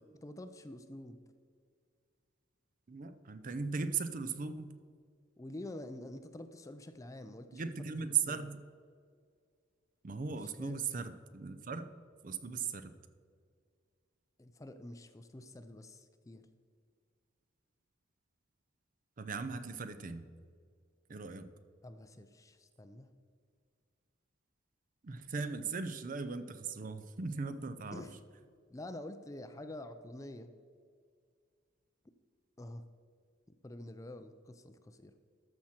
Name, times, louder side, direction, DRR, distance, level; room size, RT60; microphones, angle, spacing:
voice 1, 0.2-1.2 5.4-8.4 10.3-10.9 14.4-16.5 21.8-23.1 27.9-28.1 28.7-30.5 32.6-32.8 33.6-35.1, left 1 dB, 15° left, 10 dB, 0.4 m, -47 dB
voice 2, 2.9-4.7 7.5-8.6 10.0-11.9 12.2-12.9 19.2-20.3 21.1-21.5 25.0-28.1, right 5 dB, 40° right, 11 dB, 0.5 m, -38 dB
13.0 x 6.1 x 4.4 m, 2.1 s
head